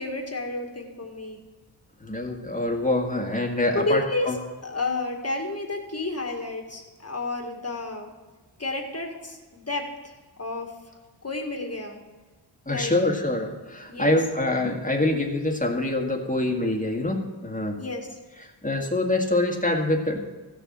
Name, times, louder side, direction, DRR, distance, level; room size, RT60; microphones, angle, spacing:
voice 1, 0.0-1.4 3.7-4.3 4.6-8.1 8.6-10.1 10.4-10.7 11.2-12.0 12.7-12.9 13.9-14.2 17.8-18.1, left 2 dB, 35° left, 2 dB, 1.9 m, -31 dB
voice 2, 2.0-4.4 12.7-17.8 18.4-20.2, left 2 dB, 15° left, 1 dB, 1.8 m, -25 dB
15.0 x 6.9 x 7.6 m, 1.3 s
wide cardioid pair, 95°, 45 cm